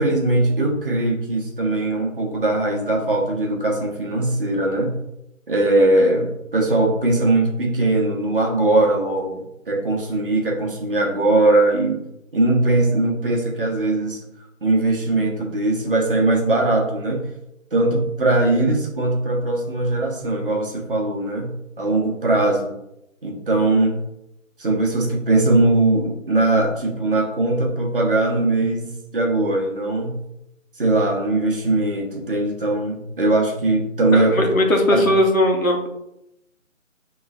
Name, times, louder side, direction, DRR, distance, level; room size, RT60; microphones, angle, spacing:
voice 1, 0.0-5.0 5.5-12.0 12.3-14.2 14.6-17.3 17.7-22.8 23.2-24.0 24.6-30.2 30.8-34.4 34.9-35.0, right 2 dB, 40° right, 0 dB, 1.0 m, -20 dB
voice 2, 34.1-35.9, left 1 dB, 90° left, 2 dB, 1.2 m, -18 dB
6.9 x 3.1 x 2.4 m, 0.85 s
figure-of-eight pair, 160°, 40 cm